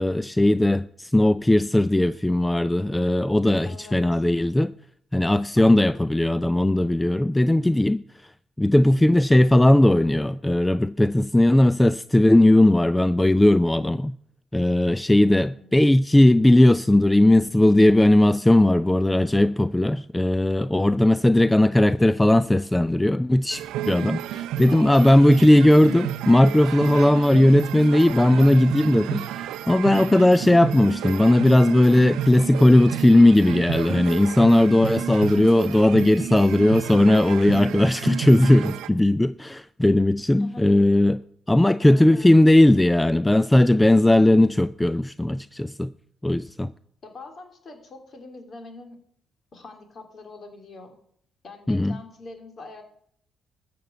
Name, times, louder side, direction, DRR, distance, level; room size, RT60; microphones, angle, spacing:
voice 1, 0.0-4.7 5.1-8.3 8.6-14.2 14.5-41.2 41.5-45.9 46.2-46.7 51.7-52.0, left 1 dB, 10° left, 0.4 m, -18 dB
voice 2, 3.6-4.2 5.6-5.9 15.1-15.8 24.7-25.3 40.4-41.1 41.8-42.3 47.0-49.0 49.5-50.9 51.4-52.8, left 3 dB, 50° left, 3.2 m, -44 dB
sound 1, 23.5-38.9, right 12 dB, 90° right, 0.5 m, -32 dB
13.0 x 6.8 x 8.0 m
cardioid pair, 70°, 0 cm